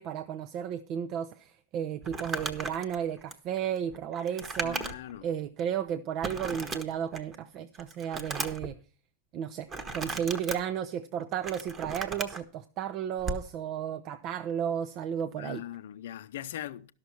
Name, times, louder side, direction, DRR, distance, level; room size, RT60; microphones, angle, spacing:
voice 1, 0.0-4.9 5.2-8.8 9.3-9.7 9.9-15.6, right 9 dB, 40° right, 0.6 m, -33 dB
Crumpling crinkling, 2.0-5.2 5.6-5.7 6.2-7.4 7.7-8.7 9.7-10.6 11.2-12.4 13.2-13.5, right 3 dB, 20° right, 1.2 m, -36 dB
voice 2, 4.6-5.3 15.4-16.9, left 12 dB, 55° left, 0.6 m, -40 dB
12.5 x 6.4 x 5.9 m
figure-of-eight pair, 90°, 0 cm